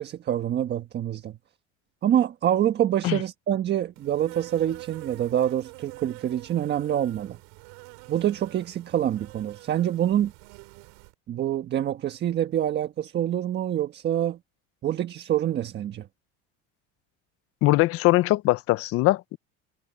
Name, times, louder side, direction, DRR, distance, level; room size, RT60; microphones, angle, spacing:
voice 1, 0.0-1.4 2.0-7.4 8.1-10.3 11.3-14.4 14.8-16.1, right 11 dB, 35° right, 1.4 m, -26 dB
Insect, 4.0-11.1, right 31 dB, 80° right, 6.6 m, -46 dB
voice 2, 17.6-19.4, left 19 dB, 50° left, 0.6 m, -21 dB
cardioid pair, 145°, 30 cm